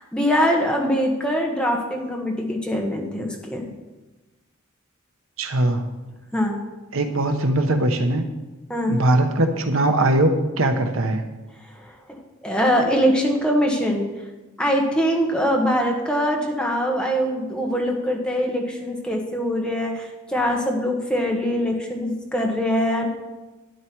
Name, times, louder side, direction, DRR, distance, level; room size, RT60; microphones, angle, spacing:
voice 1, 0.0-3.7 6.3-6.6 8.7-9.0 11.6-11.9 12.4-14.1 14.6-23.1, equal, 5° left, 0 dB, 1.5 m, -23 dB
voice 2, 5.4-5.8 6.9-8.3 8.9-11.2, right 1 dB, 70° right, 6 dB, 1.1 m, -20 dB
12.0 x 9.9 x 4.6 m, 1.1 s
head